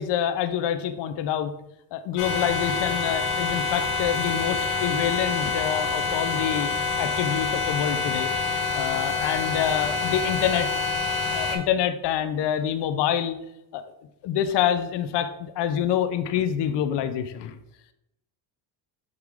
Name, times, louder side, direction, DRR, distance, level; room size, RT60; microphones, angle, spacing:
voice 1, 0.0-1.5 1.9-6.7 7.0-8.3 8.7-10.7 11.3-13.4 13.7-13.8 14.2-17.5, left 9 dB, 60° left, 10 dB, 0.7 m, -26 dB
sound 1, 2.2-11.6, left 4 dB, 80° left, 1.5 m, -27 dB
6.5 x 4.6 x 3.6 m, 0.85 s
cardioid pair, 95°, 48 cm